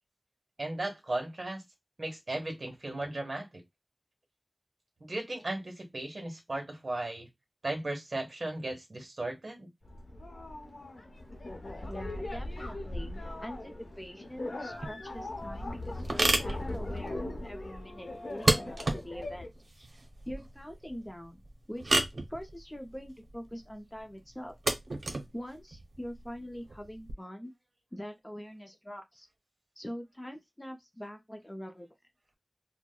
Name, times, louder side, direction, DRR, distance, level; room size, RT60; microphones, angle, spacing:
voice 1, 0.6-1.6 2.0-3.6 5.0-7.3 7.6-9.7, right 2 dB, 55° right, 1.2 m, -36 dB
sound 1, 9.8-19.5, left 1 dB, 85° left, 0.8 m, -39 dB
voice 2, 11.9-19.5 19.7-19.9 20.3-21.4 21.7-22.0 22.3-24.5 25.3-27.5 27.9-29.3 29.8-31.9, equal, 15° left, 0.5 m, -44 dB
sound 2, 14.7-27.1, right 2 dB, 85° right, 0.6 m, -33 dB
4.4 x 2.1 x 2.2 m
wide cardioid pair, 70°, 0 cm